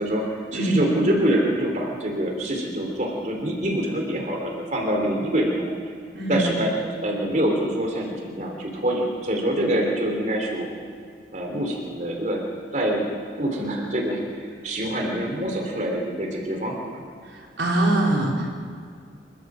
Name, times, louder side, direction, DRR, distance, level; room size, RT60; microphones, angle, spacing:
voice 1, 0.0-5.7 6.3-10.7 11.3-13.0 13.4-16.9, right 1 dB, 45° right, 1 dB, 3.5 m, -25 dB
voice 2, 17.6-18.5, right 2 dB, 85° right, -2 dB, 4.5 m, -22 dB
26.0 x 13.5 x 7.7 m, 2.2 s
head